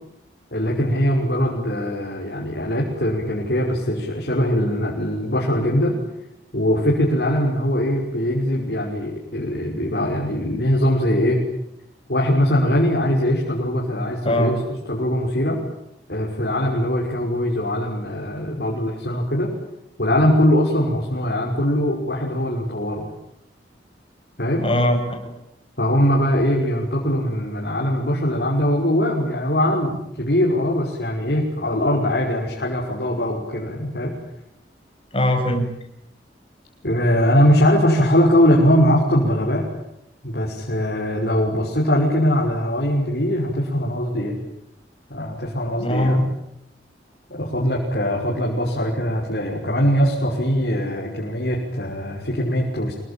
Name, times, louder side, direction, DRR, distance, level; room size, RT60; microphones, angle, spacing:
voice 1, 0.5-6.0 6.5-11.4 12.1-14.6 14.9-15.6 16.1-19.5 20.0-23.1 24.4-24.6 25.8-34.1 36.8-39.7 40.2-44.4 45.1-46.2 47.3-52.9, equal, 65° left, -2 dB, 6.1 m, -21 dB
voice 2, 14.2-14.6 24.6-25.3 35.1-35.7 45.8-46.2, left 1 dB, 30° left, 3 dB, 7.2 m, -20 dB
27.5 x 23.5 x 9.2 m, 0.80 s
head